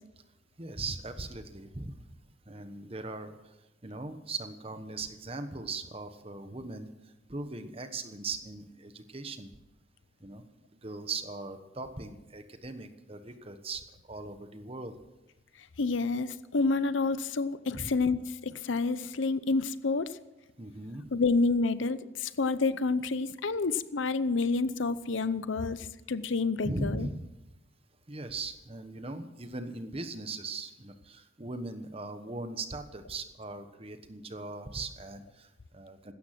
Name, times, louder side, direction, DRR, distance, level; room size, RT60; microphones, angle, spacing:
voice 1, 0.6-2.1 2.5-3.5 3.8-9.5 10.2-10.4 10.7-15.0 17.7-17.9 20.6-21.0 26.6-27.3 28.1-36.1, right 3 dB, 30° right, 9 dB, 1.2 m, -39 dB
voice 2, 15.8-20.1 21.1-27.1, left 3 dB, 75° left, 14 dB, 0.7 m, -29 dB
16.5 x 13.0 x 6.0 m, 0.99 s
head